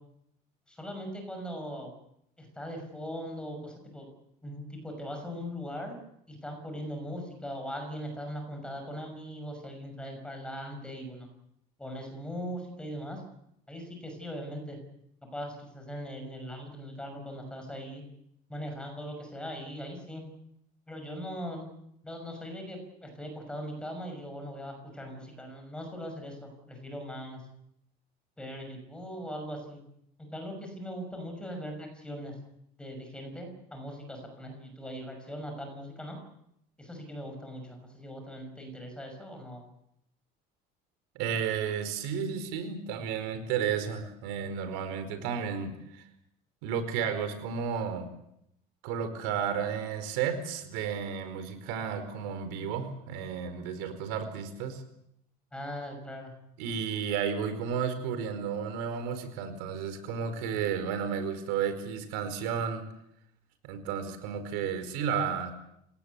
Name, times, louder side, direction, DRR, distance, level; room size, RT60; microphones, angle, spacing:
voice 1, 0.7-1.9 2.4-4.1 4.4-6.0 6.3-11.3 11.8-13.2 13.7-14.8 15.2-18.0 18.5-20.2 20.9-21.7 22.0-27.4 28.4-29.8 30.2-32.3 32.8-36.2 36.8-39.6 55.5-56.3, equal, 5° left, 4 dB, 6.1 m, -40 dB
voice 2, 41.1-46.0 46.6-48.1 48.8-54.8 56.6-62.8 63.6-65.5, right 7 dB, 90° right, 10 dB, 4.7 m, -32 dB
28.0 x 18.0 x 8.4 m, 0.76 s
cardioid pair, 180°, 18 cm